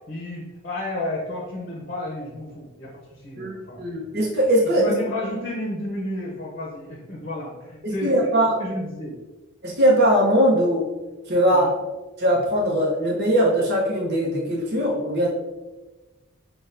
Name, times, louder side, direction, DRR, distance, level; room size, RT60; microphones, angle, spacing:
voice 1, 0.1-3.8 4.1-4.2 4.8-8.3 8.6-9.1 11.5-11.7, left 1 dB, 40° left, -2 dB, 0.7 m, -32 dB
voice 2, 3.4-4.8 7.8-8.5 9.6-10.9 11.3-11.7 12.2-15.3, equal, 50° right, -4 dB, 0.8 m, -20 dB
6.1 x 2.3 x 2.6 m, 1.1 s
head